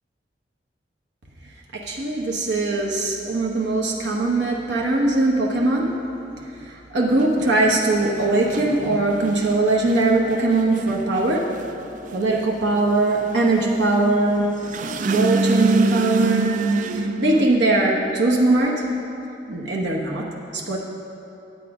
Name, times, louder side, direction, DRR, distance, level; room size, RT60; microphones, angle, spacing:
voice 1, 1.7-5.9 6.6-11.4 12.1-14.5 15.0-16.6 16.9-18.8 19.5-20.3 20.5-20.8, right 2 dB, 75° right, -2 dB, 1.1 m, -21 dB
sound 1, 7.1-17.5, right 2 dB, 45° right, 0.4 m, -27 dB
9.2 x 8.5 x 4.8 m, 2.8 s
head